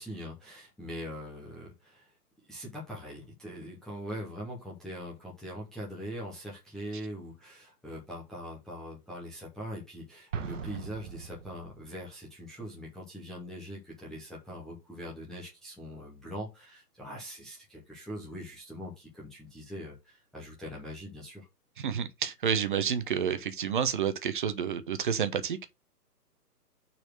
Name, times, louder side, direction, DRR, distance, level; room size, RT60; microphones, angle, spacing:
voice 1, 0.0-2.1 2.5-21.5, equal, ahead, 0.6 m, -42 dB
Explosion, 10.3-12.0, right 6 dB, 50° right, 1.2 m, -39 dB
voice 2, 21.8-25.7, right 7 dB, 30° right, 0.8 m, -30 dB
6.2 x 4.2 x 6.2 m
figure-of-eight pair, 135°, 48 cm